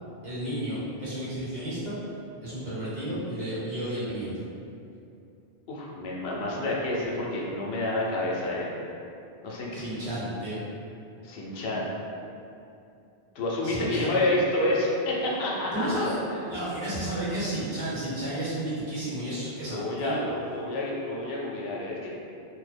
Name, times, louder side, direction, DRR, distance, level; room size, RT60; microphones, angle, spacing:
voice 1, 0.2-1.9 2.4-4.3 9.7-10.6 13.6-14.2 15.7-16.1 16.5-20.3, right 1 dB, 45° right, -10 dB, 1.0 m, -32 dB
voice 2, 5.7-8.7 9.4-10.1 11.2-11.9 13.3-16.4 19.7-22.1, left 1 dB, 75° left, -4 dB, 0.8 m, -29 dB
3.0 x 2.1 x 3.3 m, 2.7 s
omnidirectional pair, 1.1 m